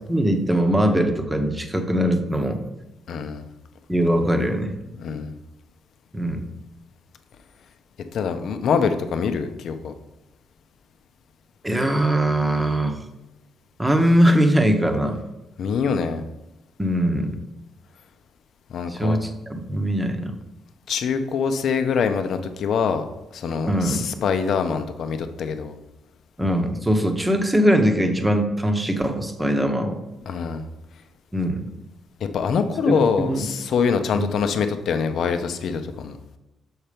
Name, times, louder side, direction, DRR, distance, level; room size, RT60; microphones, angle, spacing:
voice 1, 0.1-2.6 3.9-4.8 6.1-6.5 11.6-13.0 13.8-15.2 16.8-17.4 18.9-20.3 23.7-24.1 26.4-30.0 31.3-31.7 32.9-33.5 34.1-34.3, equal, 10° right, 5 dB, 0.9 m, -21 dB
voice 2, 3.1-3.4 5.0-5.3 8.1-9.9 15.6-16.2 18.7-19.2 20.9-23.0 23.3-25.7 30.3-30.6 32.3-36.1, left 6 dB, 65° left, 8 dB, 0.7 m, -24 dB
6.6 x 4.4 x 5.1 m, 0.95 s
cardioid pair, 90°, 0 cm